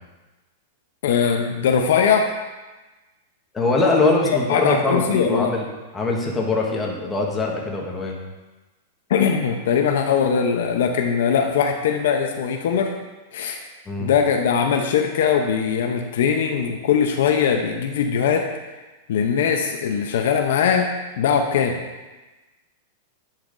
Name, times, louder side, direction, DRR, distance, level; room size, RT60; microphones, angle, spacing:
voice 1, 1.0-2.3 4.5-5.5 9.1-12.9 13.3-13.6 14.0-18.5 19.1-21.8, left 7 dB, 75° left, 4 dB, 0.7 m, -21 dB
voice 2, 3.5-5.7 5.9-8.2 13.9-14.1, left 3 dB, 15° left, -1 dB, 1.3 m, -22 dB
10.0 x 5.7 x 2.6 m, 1.2 s
hypercardioid pair, 130°, 0 cm